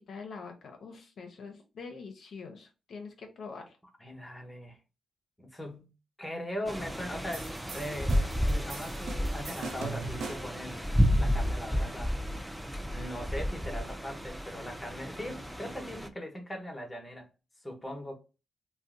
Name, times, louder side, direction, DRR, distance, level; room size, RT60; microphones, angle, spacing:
voice 1, 0.0-3.8, left 4 dB, 70° left, 0.6 m, -44 dB
voice 2, 4.0-4.8 5.4-5.9 6.2-10.9 11.1-12.1 12.9-17.3 17.6-18.1, equal, 15° left, 0.9 m, -40 dB
sound 1, 6.7-16.1, equal, 5° right, 0.4 m, -31 dB
sound 2, 7.3-10.6, right 4 dB, 80° right, 0.5 m, -41 dB
2.6 x 2.1 x 3.6 m
cardioid pair, 75°, 0 cm